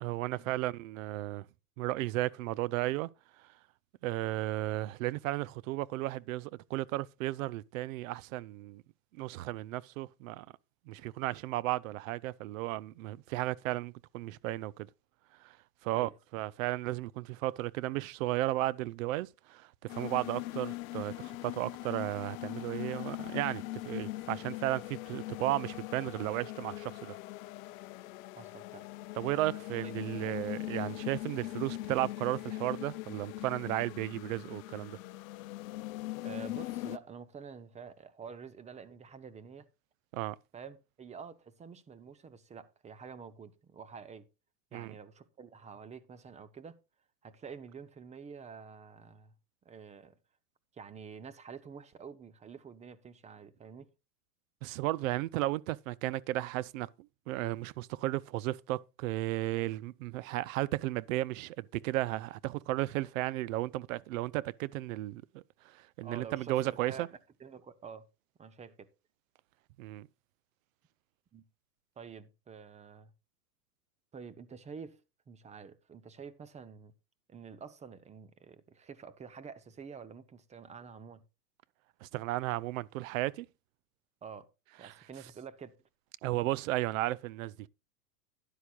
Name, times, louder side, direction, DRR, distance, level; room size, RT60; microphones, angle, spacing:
voice 1, 0.0-1.5 1.8-3.1 3.4-3.5 4.0-8.8 9.1-10.5 10.9-14.9 15.4-15.6 15.8-27.2 29.2-35.0 40.1-40.4 44.7-44.9 54.6-67.1 69.8-70.1 82.0-83.5 84.8-84.9 86.2-87.7, right 17 dB, 55° right, 0.6 m, -34 dB
sound 1, 19.9-37.0, left 18 dB, 60° left, 0.7 m, -41 dB
voice 2, 28.3-28.9 29.8-29.9 36.2-39.7 40.5-44.3 44.7-46.8 47.2-49.3 49.6-50.2 50.7-53.9 66.0-67.1 67.4-68.1 68.4-68.9 71.3-71.4 72.0-73.1 74.1-75.0 75.3-76.9 77.3-81.2 84.2-84.5 84.8-85.7, right 6 dB, 15° right, 0.7 m, -48 dB
12.5 x 10.0 x 2.4 m
hypercardioid pair, 120°, 47 cm